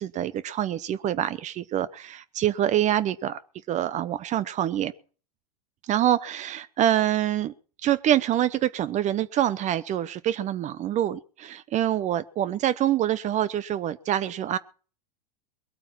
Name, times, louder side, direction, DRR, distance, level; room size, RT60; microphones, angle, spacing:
voice 1, 0.0-3.4 3.7-4.9 5.8-7.5 7.8-14.6, right 11 dB, 35° right, 17 dB, 0.8 m, -25 dB
21.5 x 8.8 x 5.9 m, 0.41 s
hypercardioid pair, 95°, 20 cm